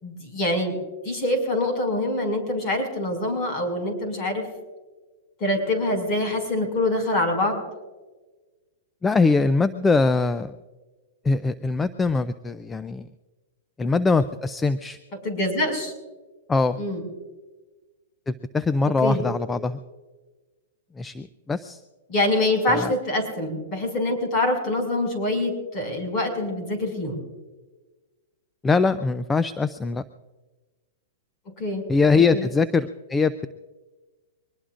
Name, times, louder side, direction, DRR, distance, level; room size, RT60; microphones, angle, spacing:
voice 1, 0.0-0.8 1.0-4.5 5.4-7.7 15.2-15.9 16.8-17.1 19.0-19.2 22.1-27.2 31.6-31.8 32.3-32.5, left 1 dB, 30° left, 3 dB, 5.8 m, -25 dB
voice 2, 9.0-10.5 11.2-13.1 13.8-15.0 16.5-16.8 18.3-19.8 21.0-21.8 22.7-22.9 28.6-30.0 31.9-33.5, left 4 dB, 10° left, 13 dB, 0.4 m, -22 dB
23.5 x 20.5 x 2.5 m, 1.2 s
hypercardioid pair, 150°, 0 cm